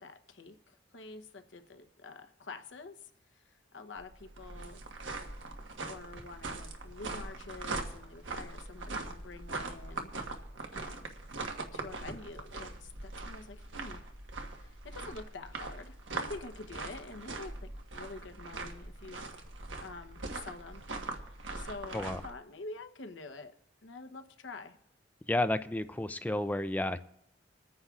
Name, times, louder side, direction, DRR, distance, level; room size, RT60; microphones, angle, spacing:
voice 1, 0.0-4.8 5.8-10.1 10.7-11.1 11.7-14.0 14.5-19.2 19.8-23.5 23.8-24.8, left 3 dB, 75° left, 7 dB, 0.9 m, -47 dB
sound 1, 4.0-22.3, right 3 dB, 80° right, 1.3 m, -41 dB
voice 2, 25.3-27.0, left 1 dB, 10° left, 11 dB, 0.4 m, -31 dB
27.0 x 9.5 x 2.4 m, 0.78 s
head